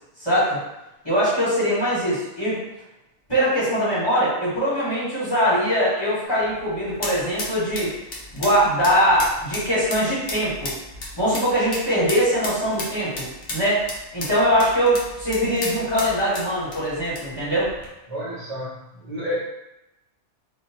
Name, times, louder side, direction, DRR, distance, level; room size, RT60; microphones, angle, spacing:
voice 1, 0.2-0.6 1.0-2.6 3.3-7.9 8.3-10.7 11.2-13.8 14.1-17.7, equal, 20° left, -11 dB, 1.4 m, -22 dB
sound 1, 6.2-17.9, left 2 dB, 55° left, 0.8 m, -35 dB
voice 2, 18.1-19.4, equal, 50° right, -7 dB, 0.5 m, -30 dB
2.6 x 2.1 x 2.9 m, 0.91 s
omnidirectional pair, 1.3 m